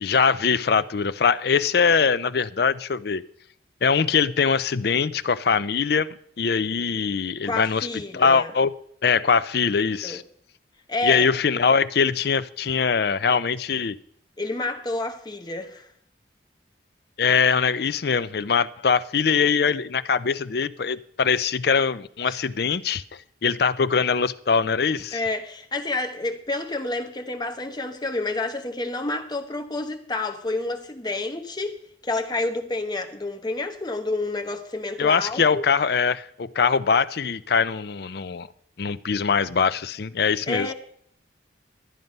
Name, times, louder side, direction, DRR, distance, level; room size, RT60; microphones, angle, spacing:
voice 1, 0.0-3.2 3.8-6.1 6.4-7.9 8.1-8.7 9.0-10.2 11.0-14.0 17.2-25.2 35.0-38.5 38.8-40.7, left 5 dB, 55° left, 0.5 m, -22 dB
voice 2, 7.4-8.5 10.0-10.2 10.9-11.3 14.4-15.9 22.3-22.4 25.1-31.8 32.0-35.6 40.5-40.7, left 2 dB, 20° left, 1.0 m, -29 dB
12.5 x 9.3 x 5.4 m
head